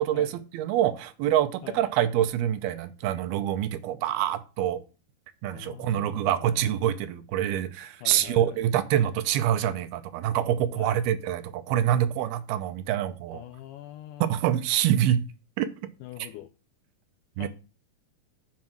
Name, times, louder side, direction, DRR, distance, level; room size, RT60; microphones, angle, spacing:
voice 1, 0.0-4.8 5.4-13.4 14.3-15.2 15.6-15.7 16.2-16.3 17.4-17.5, right 11 dB, 85° right, 2.6 m, -26 dB
voice 2, 5.5-6.7 8.0-8.6 10.7-11.0 13.3-14.3 16.0-16.5 17.4-17.5, left 13 dB, 85° left, 1.8 m, -43 dB
7.2 x 5.3 x 6.2 m
omnidirectional pair, 4.4 m